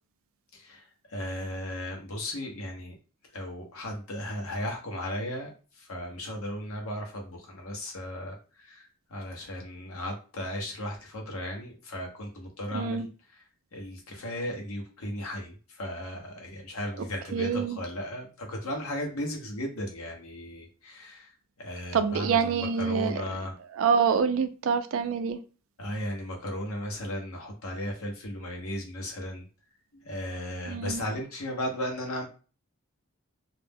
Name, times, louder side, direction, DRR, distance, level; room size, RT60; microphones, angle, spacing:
voice 1, 0.5-2.9 3.3-5.5 5.8-13.4 13.7-21.3 21.6-23.6 25.8-29.5 30.0-32.2, left 1 dB, 90° left, 0.9 m, -36 dB
voice 2, 12.7-13.1 17.3-17.8 21.9-23.2 23.8-25.4 30.7-31.0, right 6 dB, 70° right, 0.4 m, -26 dB
2.4 x 2.1 x 3.4 m
head